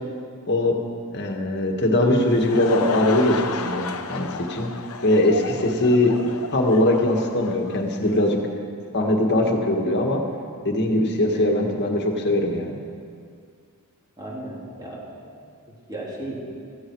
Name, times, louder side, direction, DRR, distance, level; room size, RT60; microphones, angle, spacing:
voice 1, 0.5-0.8 1.1-4.7 5.0-6.2 6.5-8.4 8.9-10.2 10.7-12.8, left 1 dB, 50° left, 2 dB, 1.8 m, -21 dB
Laughter / Crowd, 2.1-8.4, left 5 dB, 70° left, 0.9 m, -33 dB
voice 2, 11.3-11.7 14.2-15.0 15.3-16.4, right 1 dB, 20° right, -5 dB, 3.4 m, -35 dB
17.0 x 14.0 x 4.8 m, 2.3 s
head